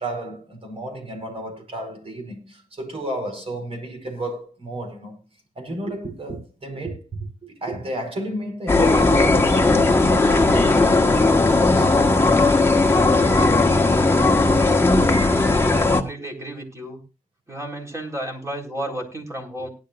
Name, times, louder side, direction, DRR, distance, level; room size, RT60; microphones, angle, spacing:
voice 1, 0.0-5.2 5.5-7.1 7.4-12.8, right 1 dB, 40° right, 4.8 m, -33 dB
sound 1, 8.7-16.0, left 3 dB, 15° left, 1.6 m, -17 dB
voice 2, 15.6-17.0 17.5-19.7, right 1 dB, 20° right, 4.1 m, -32 dB
18.5 x 11.0 x 2.6 m
wide cardioid pair, 105°, 14 cm